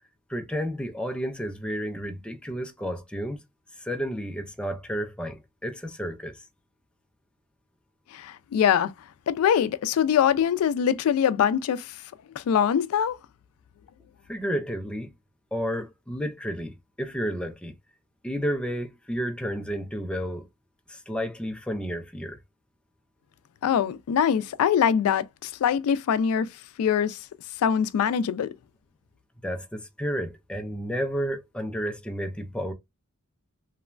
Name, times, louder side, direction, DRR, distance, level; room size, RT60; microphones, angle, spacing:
voice 1, 0.3-3.4 3.8-6.4 14.3-15.1 15.5-17.7 18.2-20.5 20.9-22.4 29.4-32.7, equal, 5° left, 0.3 m, -31 dB
voice 2, 8.1-8.9 9.3-12.0 12.4-13.2 23.6-26.5 26.8-27.2 27.6-28.5, left 8 dB, 90° left, 0.3 m, -23 dB
2.9 x 2.2 x 2.3 m
head